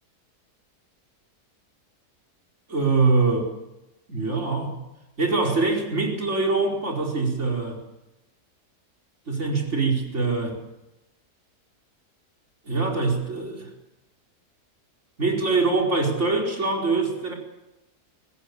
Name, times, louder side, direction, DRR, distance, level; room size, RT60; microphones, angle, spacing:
voice 1, 2.7-3.5 4.1-4.8 5.2-7.8 9.3-10.6 12.6-13.7 15.2-17.3, right 3 dB, 45° right, 1 dB, 5.1 m, -23 dB
24.0 x 19.5 x 8.6 m, 0.96 s
omnidirectional pair, 1.7 m